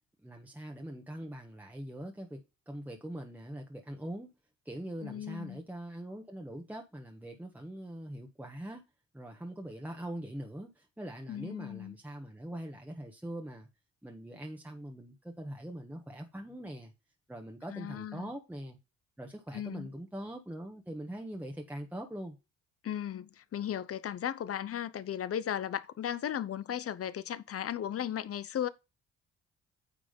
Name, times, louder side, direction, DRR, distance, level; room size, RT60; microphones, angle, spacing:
voice 1, 0.2-2.4 2.7-4.3 4.6-8.8 9.1-13.7 14.0-16.9 17.3-18.8 19.2-22.4, right 1 dB, 5° right, 1.4 m, -42 dB
voice 2, 5.0-5.6 11.3-11.9 17.7-18.3 19.5-19.9 22.8-28.7, left 10 dB, 50° left, 0.9 m, -36 dB
9.1 x 3.7 x 5.2 m
cardioid pair, 90°, 30 cm